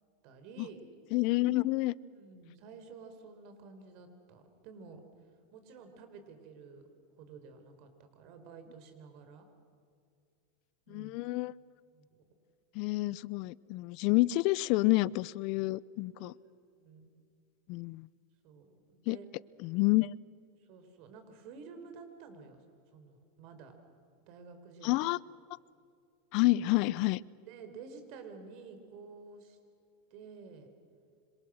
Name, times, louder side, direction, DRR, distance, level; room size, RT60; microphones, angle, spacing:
voice 1, 0.2-0.8 2.1-5.0 5.5-6.8 7.2-9.5 10.9-11.2 11.9-12.2 16.2-17.1 18.4-19.3 20.7-22.6 22.9-23.7 24.3-25.0 27.5-29.6 30.1-30.7, right 5 dB, 55° right, 8 dB, 4.4 m, -51 dB
voice 2, 1.1-1.9 10.9-11.5 12.7-16.3 17.7-18.1 19.1-19.2 19.6-20.1 24.8-25.2 26.3-27.2, left 19 dB, 50° left, 22 dB, 0.6 m, -28 dB
26.5 x 26.5 x 6.5 m, 2.3 s
supercardioid pair, 135°, 0 cm